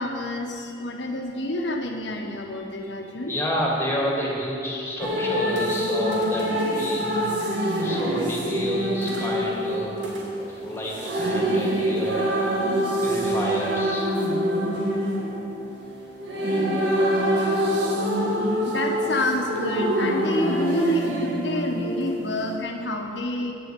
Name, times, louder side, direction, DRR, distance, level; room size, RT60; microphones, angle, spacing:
voice 1, 0.0-3.3 18.7-23.5, left 1 dB, 85° left, 3 dB, 1.4 m, -28 dB
voice 2, 3.3-7.3 7.8-9.9 10.4-12.3 13.0-14.1, equal, 15° left, -3 dB, 2.3 m, -30 dB
sound 1, 5.0-22.6, equal, 75° right, 2.0 m, -25 dB
9.9 x 7.8 x 9.2 m, 2.6 s
head